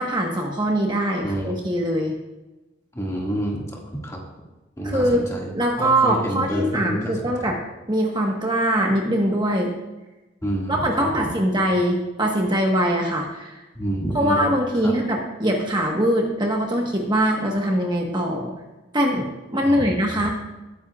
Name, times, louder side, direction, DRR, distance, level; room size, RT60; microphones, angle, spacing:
voice 1, 0.0-2.1 4.8-5.2 5.5-7.6 7.9-9.7 10.7-13.6 14.1-18.5 18.9-20.3, right 1 dB, 25° right, 0 dB, 1.3 m, -22 dB
voice 2, 1.2-1.6 2.9-4.2 4.8-7.3 10.4-11.1 13.7-14.5 14.8-15.0 19.6-20.3, right 1 dB, 15° left, -1 dB, 2.0 m, -28 dB
20.0 x 9.8 x 2.4 m, 1.1 s
head